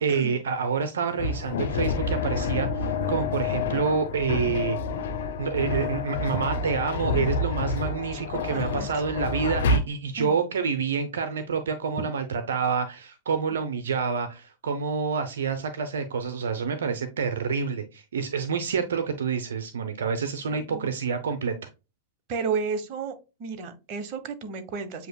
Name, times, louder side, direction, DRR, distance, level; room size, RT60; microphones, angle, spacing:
voice 1, 0.0-4.8 5.4-21.5, right 5 dB, 80° right, 0.6 m, -28 dB
sound 1, 1.2-9.8, left 4 dB, 70° left, 0.8 m, -28 dB
voice 2, 8.5-8.9 10.2-10.4 20.7-20.9 22.3-23.1 23.4-25.1, right 5 dB, 50° right, 1.0 m, -32 dB
7.6 x 2.9 x 2.2 m
hypercardioid pair, 105°, 0 cm